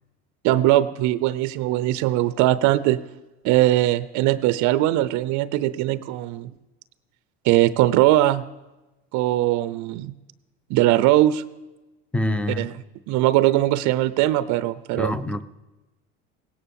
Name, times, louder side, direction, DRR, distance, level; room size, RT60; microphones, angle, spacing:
voice 1, 0.4-3.0 3.4-6.5 7.4-8.4 9.1-10.1 10.7-11.4 12.6-15.2, right 15 dB, 60° right, 0.6 m, -20 dB
voice 2, 12.1-12.7 14.9-15.4, left 1 dB, 5° left, 0.7 m, -25 dB
17.0 x 10.5 x 7.0 m
supercardioid pair, 100°, 32 cm